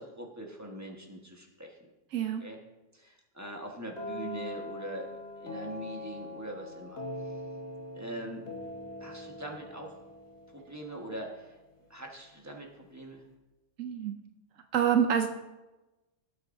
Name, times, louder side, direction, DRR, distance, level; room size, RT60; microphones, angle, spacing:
voice 1, 0.0-1.9 2.4-2.6 2.9-7.3 7.9-8.4 9.0-9.9 10.5-11.6 11.9-13.2, right 1 dB, 15° right, 0 dB, 1.3 m, -42 dB
voice 2, 2.1-2.5 13.8-14.1 14.7-15.3, right 8 dB, 80° right, 6 dB, 1.0 m, -26 dB
sound 1, 4.0-11.7, left 2 dB, 55° left, 1.5 m, -42 dB
18.0 x 8.2 x 2.7 m, 1.1 s
omnidirectional pair, 1.4 m